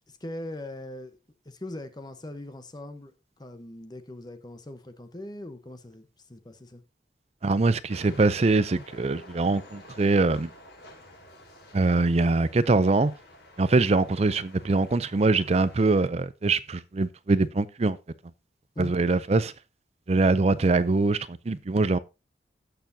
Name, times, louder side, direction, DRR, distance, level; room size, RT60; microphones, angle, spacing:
voice 1, 0.1-1.2 1.4-6.8 18.8-18.9, left 1 dB, 25° left, 1.0 m, -40 dB
voice 2, 7.4-10.5 11.7-13.1 13.6-18.0 18.8-19.5 20.1-22.0, right 3 dB, 35° right, 0.5 m, -23 dB
sound 1, 7.9-16.1, left 1 dB, 65° left, 5.4 m, -50 dB
16.5 x 6.8 x 2.7 m
head